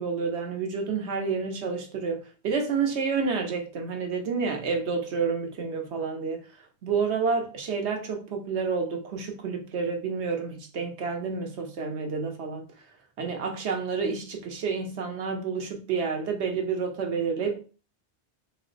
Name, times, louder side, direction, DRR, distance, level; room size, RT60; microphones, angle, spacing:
voice 1, 0.0-6.4 6.8-12.6 13.2-17.6, right 5 dB, 75° right, 1.1 m, -29 dB
3.8 x 2.1 x 3.9 m
omnidirectional pair, 1.2 m